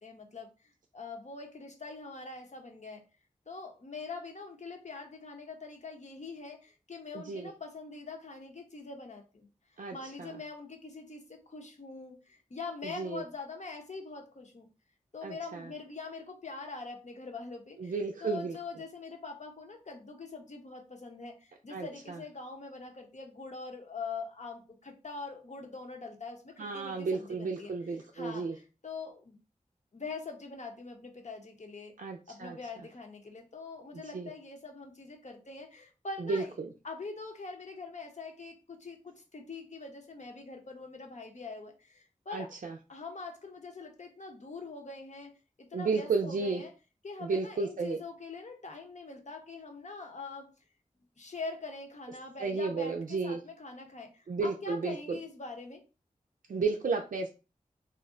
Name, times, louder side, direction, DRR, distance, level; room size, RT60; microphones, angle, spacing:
voice 1, 0.0-3.0 3.5-9.5 9.9-14.7 15.1-18.0 18.2-27.7 28.1-29.4 29.9-31.9 32.3-36.6 36.8-42.5 42.9-45.3 45.6-46.7 47.0-50.5 51.2-55.8, left 4 dB, 55° left, 3 dB, 0.8 m, -43 dB
voice 2, 7.1-7.5 9.8-10.4 12.8-13.2 15.2-15.7 17.8-18.6 21.7-22.2 26.6-28.6 32.0-32.6 34.1-34.3 36.2-36.7 42.3-42.8 45.7-46.6 47.2-48.0 52.4-53.4 54.3-55.2 56.5-57.3, right 4 dB, 70° right, 2 dB, 0.4 m, -33 dB
2.5 x 2.1 x 3.7 m, 0.32 s
cardioid pair, 40°, 14 cm